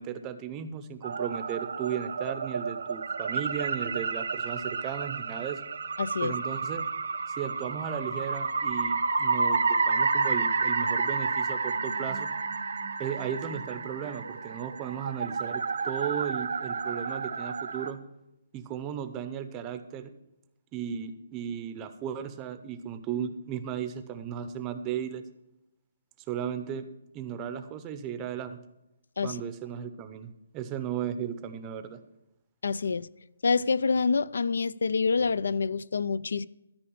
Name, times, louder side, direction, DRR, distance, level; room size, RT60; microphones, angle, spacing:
voice 1, 0.0-5.6 6.2-6.9 7.3-12.3 13.0-18.0 18.5-20.1 20.7-25.2 26.3-26.9 27.1-28.6 29.2-32.0, right 8 dB, 15° right, 0.6 m, -35 dB
sound 1, 1.0-17.9, right 4 dB, 75° right, 1.1 m, -30 dB
voice 2, 6.0-6.4 29.2-29.4 32.6-33.1 33.4-36.5, left 4 dB, 75° left, 0.4 m, -27 dB
13.0 x 5.0 x 8.6 m
hypercardioid pair, 170°, 0 cm